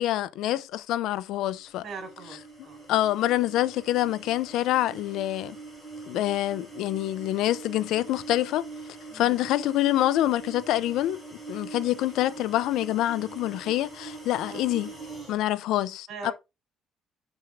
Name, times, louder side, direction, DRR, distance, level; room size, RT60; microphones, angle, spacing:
voice 1, 0.0-1.8 2.9-5.6 6.1-8.7 9.1-14.9 15.3-16.3, left 14 dB, 65° left, 0.6 m, -26 dB
sound 1, 1.5-15.4, right 3 dB, 5° right, 4.2 m, -43 dB
voice 2, 1.8-2.9 9.1-9.4 14.5-14.7 16.1-16.3, right 4 dB, 45° right, 5.3 m, -42 dB
7.1 x 6.3 x 3.6 m
cardioid pair, 180°, 0 cm